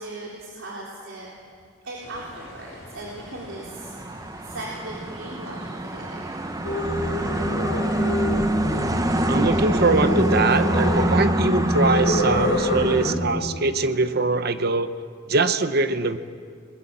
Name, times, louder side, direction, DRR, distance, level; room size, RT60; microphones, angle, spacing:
voice 1, 0.0-1.4 1.8-3.9 4.4-6.5, right 1 dB, 85° right, -4 dB, 3.8 m, -38 dB
sound 1, 2.0-10.1, left 1 dB, 15° left, 5.1 m, -45 dB
sound 2, 3.5-13.2, right 1 dB, 20° right, 0.7 m, -25 dB
Singing, 6.6-13.4, left 2 dB, 70° left, 3.7 m, -26 dB
voice 2, 9.3-14.9 15.3-16.2, right 3 dB, 55° right, 10 dB, 0.9 m, -22 dB
28.5 x 21.5 x 7.4 m, 2.1 s
head